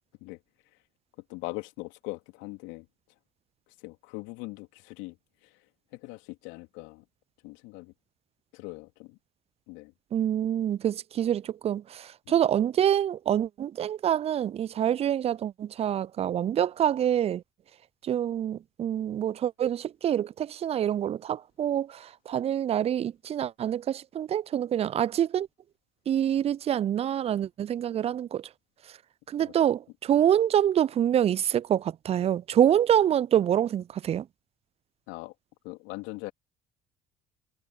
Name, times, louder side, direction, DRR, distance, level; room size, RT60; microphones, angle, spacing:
voice 1, 1.3-2.9 3.8-5.2 5.4-5.6 5.9-7.0 7.4-7.9 8.5-9.2 9.7-9.9 12.3-12.4 29.4-29.5 35.1-35.3 35.6-36.3, left 24 dB, 70° left, 3.1 m, -41 dB
voice 2, 10.1-17.4 18.0-25.5 26.1-28.5 29.3-34.3, right 10 dB, 30° right, 0.4 m, -26 dB
hypercardioid pair, 60°, 20 cm